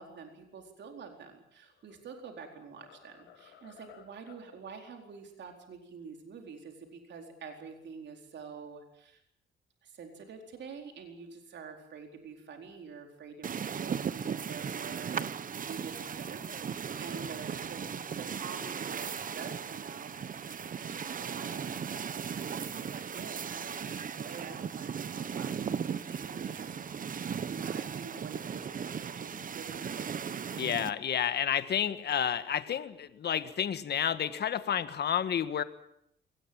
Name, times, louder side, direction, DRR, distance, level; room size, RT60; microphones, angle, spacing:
voice 1, 0.0-9.2 9.8-20.1 20.8-26.8 27.0-30.4, right 5 dB, 65° right, 4 dB, 4.4 m, -47 dB
sound 1, 1.5-2.0 2.4-4.5, left 8 dB, 90° left, 4.8 m, -57 dB
sound 2, 13.4-30.9, right 7 dB, 45° right, 1.1 m, -37 dB
voice 2, 30.5-35.6, left 9 dB, 55° left, 12 dB, 1.6 m, -30 dB
22.5 x 19.0 x 8.8 m, 0.75 s
cardioid pair, 90°, 20 cm